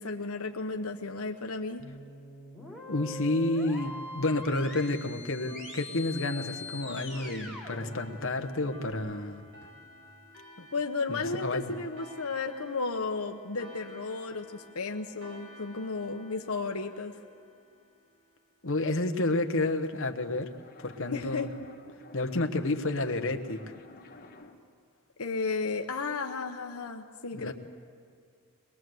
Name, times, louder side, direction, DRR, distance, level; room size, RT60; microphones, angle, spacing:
voice 1, 0.0-1.8 10.7-17.1 21.1-21.5 25.2-27.5, left 4 dB, 85° left, 4 dB, 1.0 m, -33 dB
sound 1, 1.8-8.9, left 3 dB, 5° right, 4.4 m, -43 dB
voice 2, 2.9-9.4 10.6-10.7 11.1-11.7 18.6-20.5 20.8-21.5 22.1-23.6 27.4-27.5, left 2 dB, 65° left, 5 dB, 1.2 m, -30 dB
sound 2, 5.5-18.6, equal, 60° right, 5.1 m, -53 dB
sound 3, 20.2-24.7, left 2 dB, 45° left, 1.8 m, -52 dB
22.5 x 21.5 x 7.9 m, 2.2 s
head